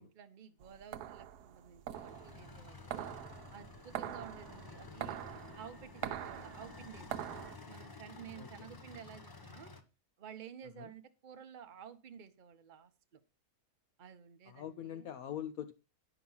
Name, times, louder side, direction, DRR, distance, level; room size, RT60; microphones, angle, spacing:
voice 1, 0.0-3.1 3.5-5.2 5.5-9.7 10.2-13.2 14.0-15.1, right 8 dB, 40° right, 0.8 m, -52 dB
sound 1, 0.6-7.6, right 11 dB, 85° right, 1.2 m, -44 dB
sound 2, 1.9-9.8, left 3 dB, 20° left, 0.6 m, -52 dB
voice 2, 8.4-8.7 10.8-10.9 14.5-15.7, left 10 dB, 70° left, 1.1 m, -43 dB
9.9 x 5.9 x 5.5 m
omnidirectional pair, 1.7 m